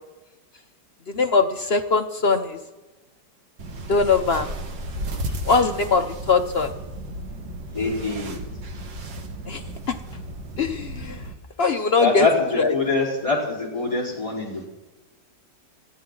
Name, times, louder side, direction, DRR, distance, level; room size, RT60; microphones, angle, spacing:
voice 1, 1.1-2.6 3.9-4.5 5.4-6.7 9.5-9.6 9.9-10.0 10.6-11.2 11.6-12.3 12.6-12.7, left 4 dB, 55° left, 7 dB, 0.7 m, -21 dB
sound 1, 3.6-11.3, right 1 dB, 90° right, 2.2 m, -34 dB
voice 2, 7.7-8.4 12.0-14.7, left 3 dB, 15° left, -4 dB, 4.4 m, -24 dB
20.5 x 14.5 x 3.8 m, 1.1 s
omnidirectional pair, 1.9 m